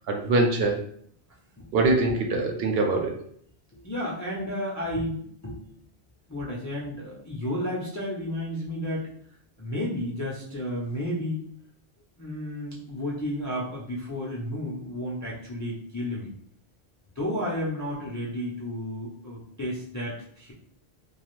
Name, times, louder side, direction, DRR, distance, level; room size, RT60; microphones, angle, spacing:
voice 1, 0.1-0.8 1.7-3.1, right 2 dB, 70° right, 2 dB, 0.8 m, -23 dB
voice 2, 3.7-5.7 6.3-9.1 9.6-11.4 12.2-16.3 17.2-20.5, left 1 dB, 25° left, -5 dB, 0.4 m, -32 dB
2.4 x 2.3 x 3.0 m, 0.63 s
omnidirectional pair, 1.1 m